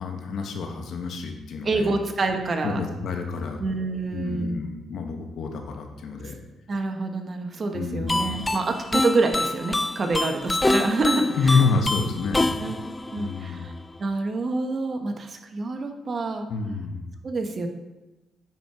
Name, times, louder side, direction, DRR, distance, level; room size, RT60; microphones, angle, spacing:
voice 1, 0.0-2.0 2.6-3.6 4.1-6.4 7.7-8.4 10.7-12.8 13.2-13.7 16.5-17.1, left 4 dB, 65° left, 4 dB, 1.2 m, -28 dB
voice 2, 1.6-2.8 3.6-4.6 6.7-11.6 12.6-12.8 13.1-13.7 14.0-16.5 17.2-17.7, right 3 dB, 40° right, 5 dB, 1.0 m, -27 dB
sound 1, 8.1-14.0, left 2 dB, 20° left, 0.3 m, -26 dB
9.2 x 4.6 x 4.6 m, 1.1 s
cardioid pair, 90°, 0 cm